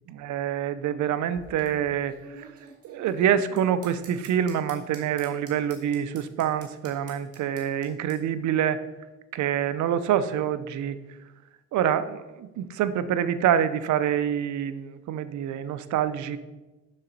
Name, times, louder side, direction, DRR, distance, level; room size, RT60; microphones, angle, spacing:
voice 1, 0.2-2.5 2.8-8.8 9.3-11.0 11.7-16.4, right 9 dB, 70° right, 13 dB, 0.6 m, -26 dB
sound 1, 1.1-8.2, right 3 dB, 50° right, 1.9 m, -49 dB
7.1 x 6.6 x 4.0 m, 1.1 s
cardioid pair, 90°, 30 cm